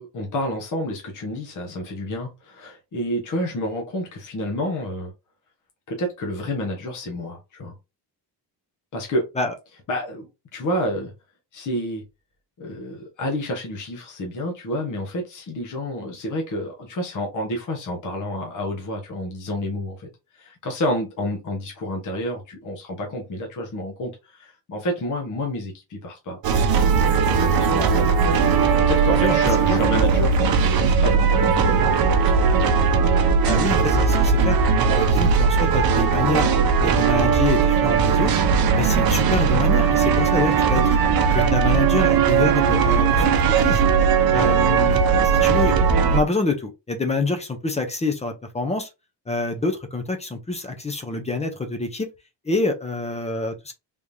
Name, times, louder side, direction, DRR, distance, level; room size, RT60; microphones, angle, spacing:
voice 1, 0.0-5.1 5.9-7.8 8.9-9.3 9.9-10.3 10.5-11.1 11.5-12.0 12.6-26.4 27.2-32.7, left 1 dB, 45° left, 1.1 m, -29 dB
sound 1, 26.4-46.2, right 6 dB, 55° right, 0.7 m, -18 dB
voice 2, 33.4-34.6 34.9-36.5 36.8-38.4 38.7-41.0 41.3-43.9 44.3-45.7 46.1-48.9 49.3-52.1 52.4-53.7, left 3 dB, 15° left, 0.5 m, -26 dB
3.6 x 3.2 x 2.6 m
wide cardioid pair, 170°, 44 cm